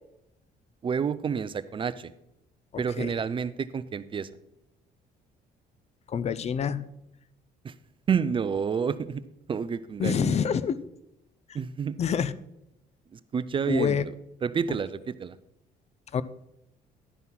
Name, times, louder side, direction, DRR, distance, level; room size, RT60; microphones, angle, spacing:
voice 1, 0.8-2.1 2.8-4.3 7.6-7.7 8.1-9.2 9.5-10.4 11.5-12.0 13.3-14.0 14.4-15.4, right 6 dB, 30° right, 15 dB, 0.5 m, -29 dB
voice 2, 2.7-3.1 6.1-6.9 10.0-10.8 11.5-11.6 12.0-12.3 13.7-14.1 16.1-16.2, left 7 dB, 40° left, 17 dB, 0.5 m, -27 dB
11.0 x 5.6 x 6.0 m, 0.85 s
cardioid pair, 110°, 17 cm